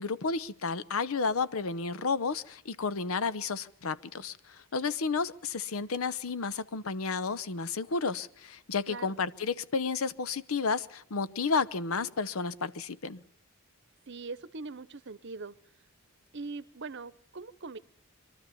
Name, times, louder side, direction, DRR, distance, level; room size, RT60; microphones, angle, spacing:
voice 1, 0.0-13.2, left 4 dB, 80° left, 0.8 m, -32 dB
voice 2, 8.9-9.2 14.1-15.6 16.3-17.8, right 3 dB, 55° right, 0.8 m, -41 dB
24.0 x 13.0 x 8.5 m
head